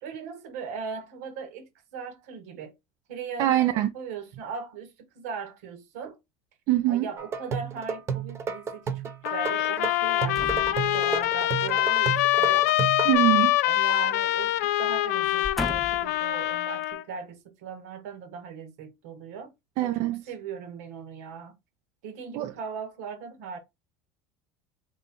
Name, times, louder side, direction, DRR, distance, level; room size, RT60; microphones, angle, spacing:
voice 1, 0.0-2.7 3.1-6.2 6.9-12.7 13.6-19.5 19.8-21.6 22.0-23.6, right 6 dB, 80° right, 1.3 m, -39 dB
voice 2, 3.4-3.9 6.7-7.1 13.1-13.5 19.8-20.2 22.3-22.5, right 14 dB, 60° right, 0.5 m, -23 dB
sound 1, 7.2-13.1, right 6 dB, 35° right, 0.9 m, -32 dB
sound 2, 9.2-17.0, left 15 dB, 85° left, 0.4 m, -24 dB
sound 3, 10.3-11.4 13.0-14.1 14.4-14.6 15.2-16.2 16.8-16.9, left 1 dB, ahead, 0.4 m, -38 dB
3.3 x 3.1 x 4.1 m
supercardioid pair, 110°, 8 cm